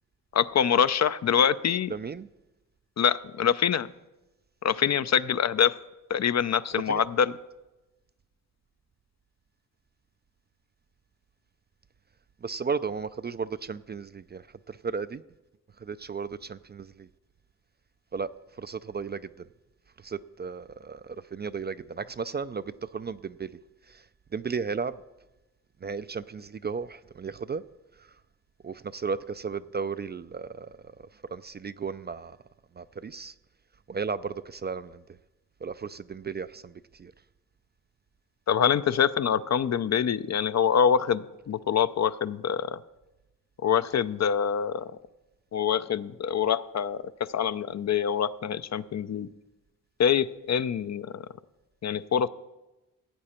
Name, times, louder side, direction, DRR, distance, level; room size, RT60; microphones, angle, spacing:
voice 1, 0.3-1.9 3.0-3.9 4.6-5.7 6.1-7.3 38.5-42.8 43.6-44.8 45.5-47.0 47.3-49.3 50.0-51.2 51.8-52.3, left 8 dB, 50° left, 14 dB, 0.5 m, -25 dB
voice 2, 1.9-2.3 6.9-7.0 12.4-15.2 15.8-17.1 18.1-18.3 18.6-19.2 20.0-23.5 23.9-24.0 24.3-25.0 25.8-27.6 28.6-30.9 31.3-32.4 32.8-33.3 33.9-35.0 35.6-37.1, right 5 dB, 30° right, 14 dB, 0.4 m, -34 dB
16.0 x 8.5 x 4.4 m, 1.0 s
cardioid pair, 60°, 35 cm